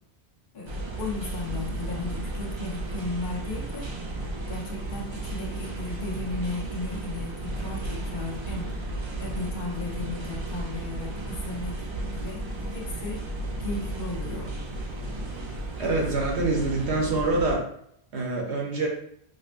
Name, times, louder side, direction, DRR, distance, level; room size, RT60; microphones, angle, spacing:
voice 1, 0.5-3.9 4.5-8.7 9.2-11.7 12.0-13.2 13.6-14.5, left 3 dB, 50° left, -3 dB, 1.0 m, -35 dB
sound 1, 0.7-17.6, right 2 dB, 50° right, 0.3 m, -34 dB
voice 2, 15.8-17.6 18.1-18.9, right 2 dB, 80° right, 0 dB, 1.1 m, -25 dB
5.1 x 2.1 x 2.5 m, 0.69 s
omnidirectional pair, 1.1 m